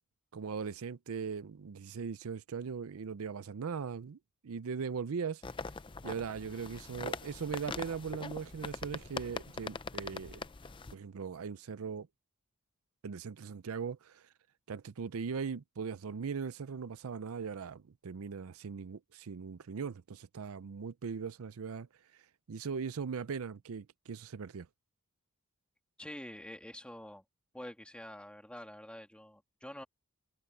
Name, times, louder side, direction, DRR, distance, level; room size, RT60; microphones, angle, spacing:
voice 1, 0.3-4.2 4.4-5.4 6.0-10.4 10.9-12.1 13.0-14.2 14.7-21.9 22.5-24.7, right 6 dB, 70° right, 0.5 m, -39 dB
sound 1, 5.4-10.9, left 4 dB, 20° left, 0.5 m, -42 dB
voice 2, 26.0-27.2 27.5-29.8, left 1 dB, 5° left, 2.8 m, -47 dB
head